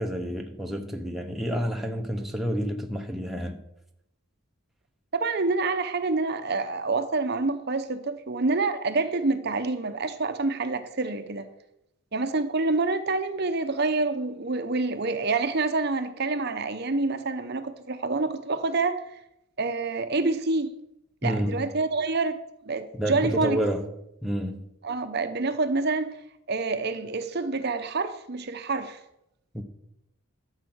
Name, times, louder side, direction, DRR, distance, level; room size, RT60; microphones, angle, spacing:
voice 1, 0.0-3.6 21.2-21.6 22.9-23.9 24.2-24.6 29.5-29.6, equal, ahead, 0.9 m, -29 dB
voice 2, 5.1-11.5 12.1-19.0 19.6-20.7 21.2-22.4 22.6-23.6 24.8-26.1 26.5-29.0, right 3 dB, 50° right, 0.8 m, -27 dB
12.5 x 7.4 x 6.2 m
head